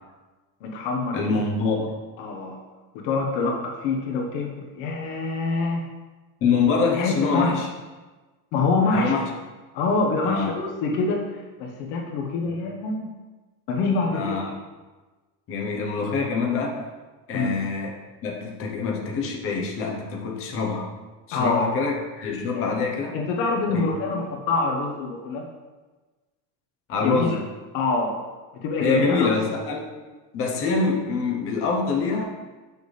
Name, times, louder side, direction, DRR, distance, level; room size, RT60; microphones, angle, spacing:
voice 1, 0.6-1.2 2.2-2.6 2.9-5.9 6.9-7.5 8.5-9.1 9.7-13.1 13.7-14.4 17.3-17.5 21.3-21.7 22.6-22.8 23.1-25.5 27.0-27.4 27.7-28.2 28.5-29.3, left 3 dB, 80° left, 1 dB, 1.2 m, -25 dB
voice 2, 1.1-1.9 6.4-7.7 8.9-9.3 10.2-10.5 14.1-14.5 15.5-16.9 17.3-20.9 21.3-23.2 23.7-23.9 26.9-27.4 28.8-29.8 30.3-32.2, left 4 dB, 25° left, 0 dB, 0.8 m, -25 dB
6.8 x 6.3 x 3.3 m, 1.3 s
cardioid pair, 175°, 50 cm